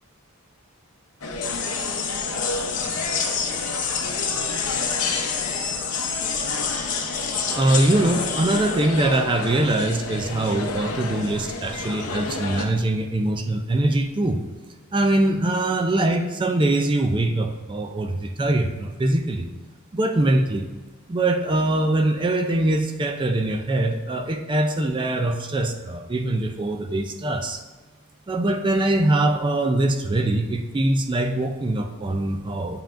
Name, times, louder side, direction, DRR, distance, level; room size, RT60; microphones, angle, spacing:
sound 1, 1.2-12.6, left 3 dB, 75° left, 0.8 m, -31 dB
sound 2, 1.4-8.8, left 6 dB, 35° left, 0.7 m, -28 dB
voice 1, 7.2-14.4 14.9-19.5 19.9-20.7 21.1-27.6 28.3-32.8, right 1 dB, 20° right, 6 dB, 0.4 m, -23 dB
8.7 x 5.5 x 2.5 m, 1.2 s
head